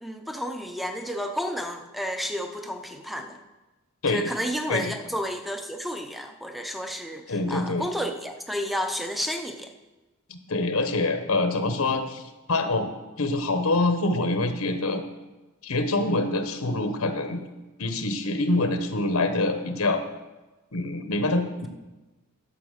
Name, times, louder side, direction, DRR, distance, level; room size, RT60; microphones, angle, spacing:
voice 1, 0.0-3.4 4.1-9.7, equal, ahead, 5 dB, 0.7 m, -31 dB
voice 2, 7.3-7.9 10.3-12.2 12.5-12.9 13.2-15.0 15.6-17.4 17.8-20.0 20.7-21.7, left 2 dB, 80° left, 7 dB, 1.0 m, -25 dB
11.0 x 6.0 x 6.5 m, 1.1 s
head